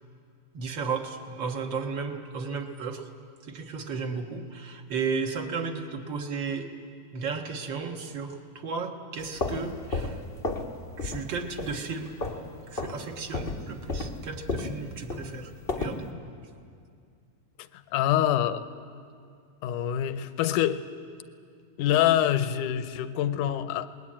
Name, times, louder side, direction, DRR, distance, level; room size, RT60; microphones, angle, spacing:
voice 1, 0.5-3.1 3.4-6.7 7.1-10.2 11.0-12.2 12.7-16.1, right 5 dB, 50° right, 4 dB, 1.5 m, -34 dB
sound 1, 9.2-10.7 11.0-11.3 11.6-12.5 12.8-13.0 13.3-16.0, left 3 dB, 55° left, 0.6 m, -32 dB
voice 2, 17.9-18.7 19.6-20.8 21.8-23.9, left 11 dB, 75° left, 11 dB, 2.1 m, -25 dB
29.5 x 20.5 x 8.8 m, 2.3 s
omnidirectional pair, 4.0 m